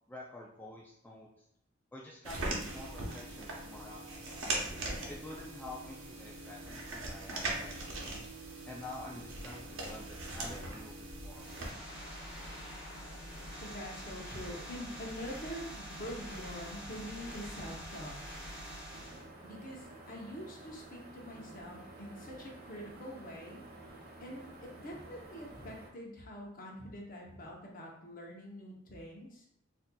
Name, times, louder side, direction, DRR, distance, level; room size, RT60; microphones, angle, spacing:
voice 1, 0.1-1.5 1.9-4.4 5.1-8.0 8.7-11.6, left 2 dB, 10° left, -4 dB, 0.3 m, -48 dB
sound 1, 2.2-11.7, right 2 dB, 80° right, 0.8 m, -40 dB
sound 2, 11.3-19.3, equal, 10° right, 1.4 m, -45 dB
voice 2, 13.6-18.2 19.4-23.6 24.2-29.5, equal, 45° left, -1 dB, 0.7 m, -45 dB
sound 3, 18.9-25.9, right 2 dB, 50° right, 0.6 m, -51 dB
4.1 x 2.6 x 2.2 m, 0.73 s
head